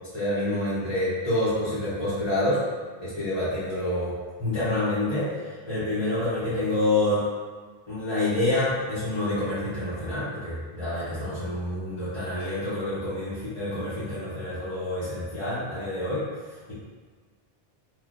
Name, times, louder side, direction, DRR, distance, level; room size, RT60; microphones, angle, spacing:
voice 1, 0.1-2.6 3.0-4.1 4.4-7.2 7.9-16.2 16.7-16.8, left 1 dB, 30° left, -14 dB, 1.0 m, -27 dB
3.3 x 2.6 x 2.5 m, 1.5 s
omnidirectional pair, 1.0 m